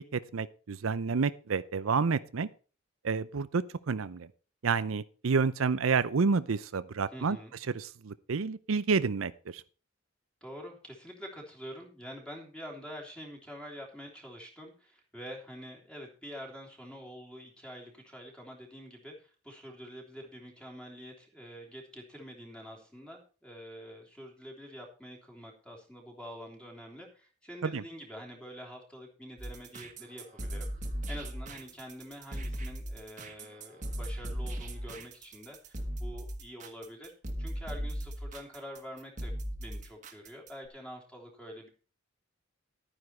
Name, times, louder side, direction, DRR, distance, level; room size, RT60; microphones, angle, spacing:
voice 1, 0.1-2.5 3.0-4.3 4.6-7.4 7.7-9.6 27.6-27.8, right 5 dB, 80° right, 0.6 m, -29 dB
voice 2, 7.1-7.5 10.4-30.7 31.1-37.1 37.4-41.7, equal, 5° left, 3.3 m, -46 dB
sound 1, 29.4-40.7, equal, 35° right, 1.7 m, -38 dB
12.0 x 9.7 x 4.4 m
head